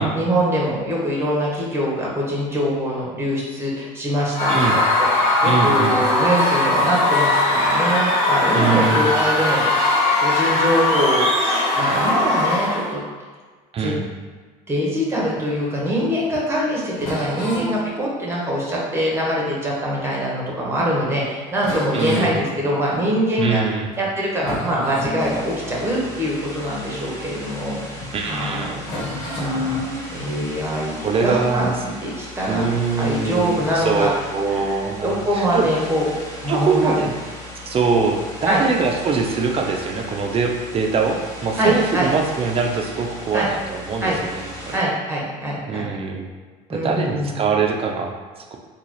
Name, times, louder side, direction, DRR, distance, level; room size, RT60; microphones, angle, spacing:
voice 1, 0.0-4.8 5.1-9.6 10.2-13.0 13.8-13.9 14.7-23.6 24.0-27.8 28.3-28.8 29.4-29.9 30.1-32.7 33.0-34.1 34.5-34.7 35.0-36.1 36.4-37.0 38.4-38.6 41.6-42.1 43.3-43.5 44.0-44.2 44.7-45.9 46.7-47.4, equal, 15° right, -4 dB, 1.2 m, -23 dB
Screaming / Cheering / Crowd, 4.3-12.9, left 2 dB, 35° left, 1.4 m, -19 dB
voice 2, 5.4-6.0 8.5-9.1 13.7-14.0 21.9-22.4 23.4-23.9 28.1-28.8 31.0-31.7 32.5-35.7 36.5-37.1 37.7-44.8 45.7-46.3 46.7-48.1 48.5-48.6, right 4 dB, 35° right, 2 dB, 0.5 m, -22 dB
sound 1, 15.3-20.2 20.8-20.9 21.2-21.3 21.5-23.5 23.9-24.1 24.3-27.7 28.0-28.2 28.8-31.8, left 1 dB, 80° left, 1.1 m, -33 dB
sound 2, 25.2-44.8, left 1 dB, 15° left, 0.9 m, -37 dB
3.8 x 2.4 x 3.1 m, 1.5 s
supercardioid pair, 85°, 17 cm